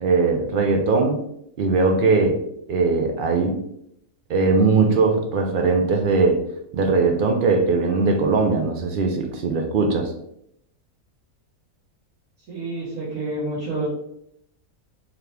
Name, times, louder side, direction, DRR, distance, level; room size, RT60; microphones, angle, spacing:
voice 1, 0.0-1.2 1.6-2.4 2.7-3.6 4.3-6.5 6.7-10.1, right 4 dB, 65° right, 4 dB, 0.5 m, -20 dB
voice 2, 12.5-13.9, right 2 dB, 85° right, -9 dB, 1.7 m, -28 dB
4.0 x 2.9 x 3.3 m, 0.74 s
omnidirectional pair, 1.5 m